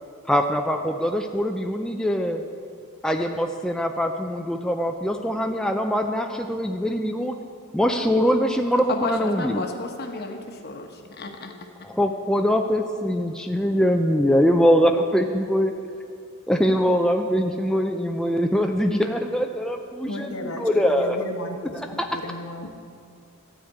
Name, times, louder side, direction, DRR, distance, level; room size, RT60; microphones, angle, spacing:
voice 1, 0.3-2.4 3.0-7.3 7.7-9.5 12.0-15.7 16.5-21.2 22.0-22.1, equal, 5° left, 3 dB, 0.4 m, -22 dB
voice 2, 8.9-11.5, left 3 dB, 50° left, 4 dB, 1.1 m, -32 dB
voice 3, 20.1-22.8, left 2 dB, 75° left, 3 dB, 1.1 m, -35 dB
13.0 x 5.0 x 8.2 m, 2.3 s
head